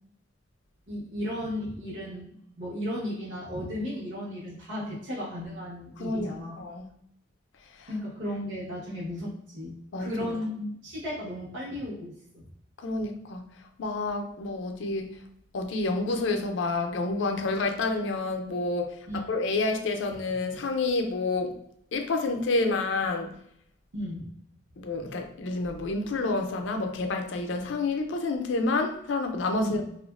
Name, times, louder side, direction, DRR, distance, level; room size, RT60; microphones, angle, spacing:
voice 1, 0.9-6.6 7.9-12.4 19.1-19.2 23.9-24.3 29.6-29.8, left 1 dB, 75° right, -7 dB, 0.9 m, -35 dB
voice 2, 6.0-6.9 7.8-7.9 9.9-10.4 12.8-13.4 13.8-15.2 15.5-21.6 21.9-23.3 24.8-29.8, left 3 dB, 75° left, 4 dB, 0.4 m, -29 dB
2.9 x 2.4 x 2.3 m, 0.72 s
head